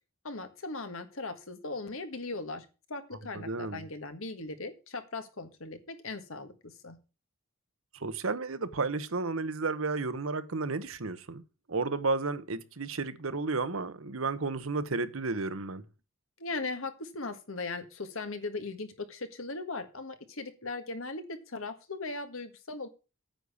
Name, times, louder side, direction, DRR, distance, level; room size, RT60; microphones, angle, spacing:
voice 1, 0.2-7.0 16.4-22.9, left 3 dB, 85° left, 1.7 m, -38 dB
voice 2, 3.3-3.9 7.9-15.8, right 3 dB, 85° right, 1.0 m, -32 dB
9.1 x 6.6 x 7.1 m
head